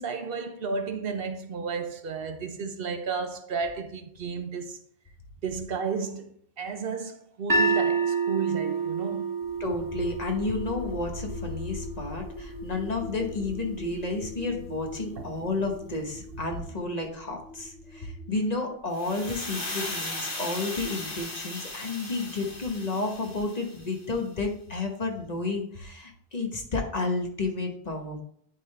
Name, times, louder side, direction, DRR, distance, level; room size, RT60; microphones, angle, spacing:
voice 1, 0.0-4.8 5.4-6.3 6.6-9.3 15.2-15.3, right 5 dB, 65° right, 0.9 m, -32 dB
sound 1, 7.5-13.7, right 4 dB, 25° right, 0.5 m, -30 dB
sound 2, 9.4-21.2, left 3 dB, 85° left, 1.5 m, -43 dB
voice 2, 9.6-28.2, left 3 dB, 40° left, 1.1 m, -31 dB
sound 3, 18.9-24.0, left 2 dB, 55° left, 2.0 m, -37 dB
10.0 x 3.8 x 3.3 m
omnidirectional pair, 1.1 m